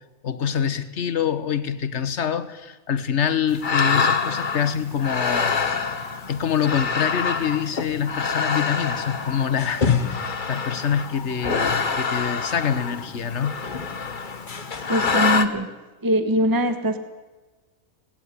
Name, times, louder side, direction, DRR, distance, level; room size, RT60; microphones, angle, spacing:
voice 1, 0.2-5.7 6.3-13.6, left 8 dB, 55° left, 13 dB, 1.4 m, -25 dB
sound 1, 3.5-15.5, left 5 dB, 35° left, 1.2 m, -26 dB
voice 2, 14.9-15.7 16.0-17.0, right 1 dB, 15° right, 9 dB, 1.2 m, -22 dB
18.0 x 17.0 x 9.6 m, 1.2 s
omnidirectional pair, 1.5 m